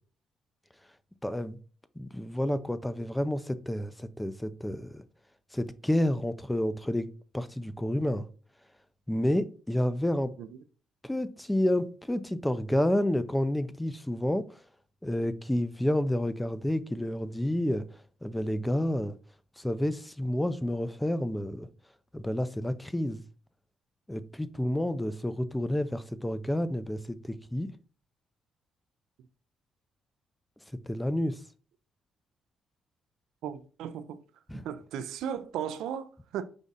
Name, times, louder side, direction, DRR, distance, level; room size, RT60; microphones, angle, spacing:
voice 1, 1.2-1.6 2.0-5.0 5.5-7.1 7.3-8.3 9.1-10.3 11.0-14.6 15.0-19.1 19.6-21.7 22.1-23.2 24.1-27.7 30.9-31.4 34.5-34.6, left 1 dB, 5° left, 0.4 m, -30 dB
voice 2, 33.4-34.2 34.5-36.4, right 9 dB, 85° right, 0.4 m, -36 dB
5.1 x 2.4 x 4.0 m
cardioid pair, 90°, 0 cm